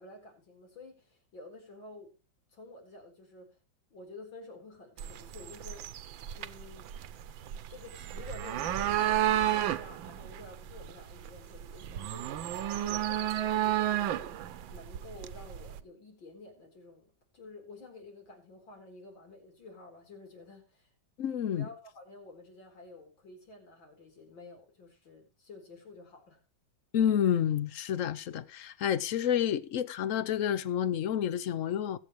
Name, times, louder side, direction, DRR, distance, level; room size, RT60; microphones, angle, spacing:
voice 1, 0.0-2.1 2.5-3.6 3.9-6.0 6.2-6.9 7.7-20.9 21.4-26.4, left 2 dB, 75° left, 4.9 m, -50 dB
sound 1, 5.0-15.8, right 12 dB, 80° right, 1.5 m, -32 dB
voice 2, 21.2-21.7 26.9-32.0, left 9 dB, 60° left, 0.9 m, -29 dB
22.0 x 8.1 x 3.1 m
omnidirectional pair, 2.1 m